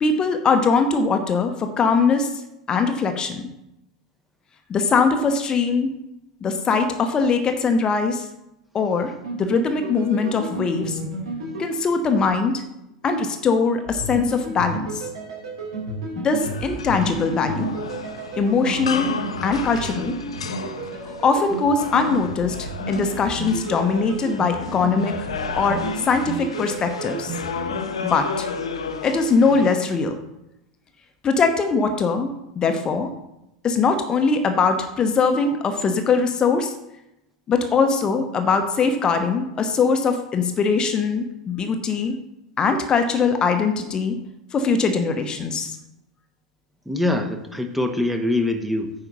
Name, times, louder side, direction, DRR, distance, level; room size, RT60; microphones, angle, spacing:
voice 1, 0.0-2.4 2.7-3.5 4.7-6.0 6.4-8.3 8.7-11.0 11.6-12.6 13.0-15.1 16.2-17.7 18.4-19.1 19.4-20.2 21.0-25.3 25.6-27.4 28.0-28.5 29.0-30.2 31.2-33.1 33.6-36.7 37.5-42.2 42.6-44.2 44.5-45.8, left 4 dB, 25° left, 7 dB, 0.9 m, -21 dB
sound 1, 9.2-12.6 13.9-27.8, right 3 dB, 65° right, 3.1 m, -33 dB
sound 2, 16.4-29.7, left 5 dB, 70° left, 0.7 m, -33 dB
voice 2, 46.9-48.9, left 2 dB, 5° right, 4 dB, 0.9 m, -23 dB
9.2 x 4.9 x 5.4 m, 0.88 s
figure-of-eight pair, 85°, 3 cm